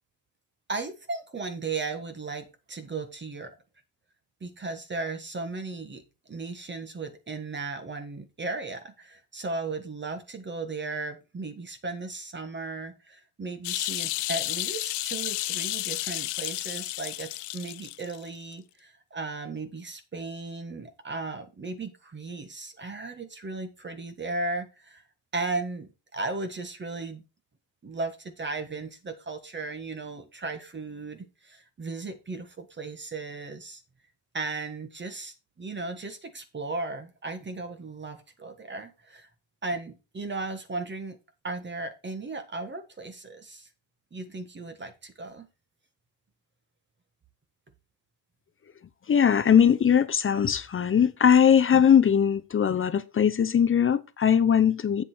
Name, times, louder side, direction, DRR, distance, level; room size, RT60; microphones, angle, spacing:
voice 1, 0.7-3.5 4.4-6.0 6.3-25.0 25.3-27.2 27.8-33.8 34.3-39.3 39.6-41.2 41.4-43.7 44.1-45.5, right 3 dB, 25° right, 1.6 m, -36 dB
sound 1, 13.6-18.2 18.5-18.6, left 18 dB, 80° left, 0.6 m, -32 dB
voice 2, 49.1-55.0, left 8 dB, 30° left, 0.7 m, -20 dB
8.1 x 7.6 x 4.5 m
cardioid pair, 120°, 41 cm